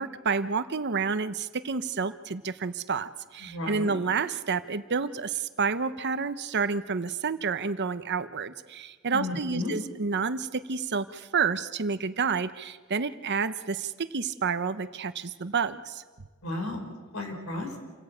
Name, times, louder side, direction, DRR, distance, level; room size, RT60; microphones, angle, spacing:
voice 1, 0.0-16.0, right 5 dB, 55° right, 12 dB, 0.9 m, -29 dB
voice 2, 3.4-3.9 9.1-9.7 16.4-16.8 17.1-17.8, left 2 dB, 70° left, 4 dB, 4.9 m, -33 dB
28.0 x 16.5 x 8.5 m, 1.4 s
head